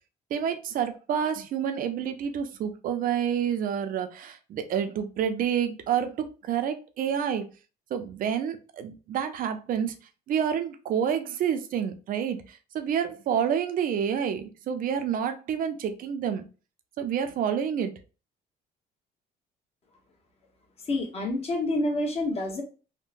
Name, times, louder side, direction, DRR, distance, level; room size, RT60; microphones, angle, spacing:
voice 1, 0.3-7.5 7.9-9.9 10.3-16.4 17.0-18.0, right 8 dB, 55° right, 8 dB, 0.5 m, -28 dB
voice 2, 20.9-22.6, left 2 dB, 35° left, 1 dB, 1.1 m, -28 dB
3.7 x 2.1 x 2.5 m, 0.34 s
cardioid pair, 110°, 17 cm